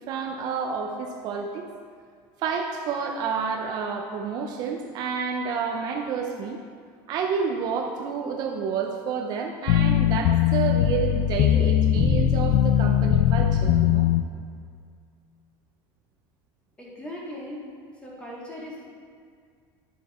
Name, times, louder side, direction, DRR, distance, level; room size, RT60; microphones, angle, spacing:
voice 1, 0.1-1.7 2.4-6.6 7.1-14.1, right 6 dB, 40° right, 2 dB, 0.7 m, -29 dB
sound 1, 9.7-14.2, left 10 dB, 55° left, 0.5 m, -20 dB
voice 2, 16.8-17.6 17.9-18.8, left 1 dB, 10° left, -5 dB, 2.1 m, -38 dB
11.5 x 7.4 x 4.3 m, 2.1 s
cardioid pair, 170°, 10 cm